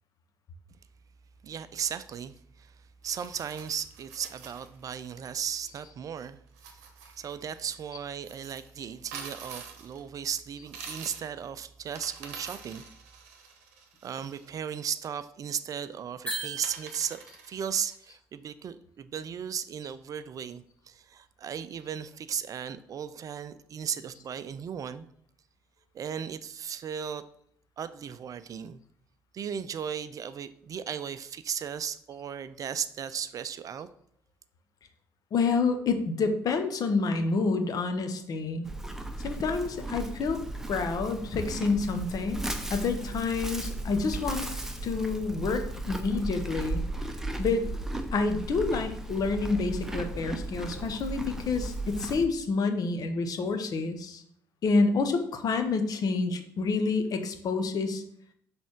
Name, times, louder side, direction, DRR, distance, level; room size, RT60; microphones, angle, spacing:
voice 1, 1.4-12.8 14.0-25.1 25.9-27.2 27.8-28.8 29.3-33.9, right 8 dB, 45° right, 14 dB, 0.4 m, -36 dB
sound 1, 3.0-5.3 6.5-7.3 8.2-10.0 10.6-11.4 11.8-14.5 16.0-16.1 16.6-17.9, right 6 dB, 75° right, 0.8 m, -46 dB
sound 2, 16.2-17.4, right 2 dB, 15° left, 2.9 m, -37 dB
voice 2, 35.3-38.7 39.2-40.4 40.7-44.5 44.8-46.8 47.4-47.6 48.1-54.2 54.6-58.0, left 4 dB, 50° left, 7 dB, 1.0 m, -28 dB
Livestock farm animals working animals, 38.6-52.3, right 2 dB, 5° right, 1.0 m, -36 dB
6.2 x 3.4 x 5.8 m, 0.66 s
hypercardioid pair, 50°, 8 cm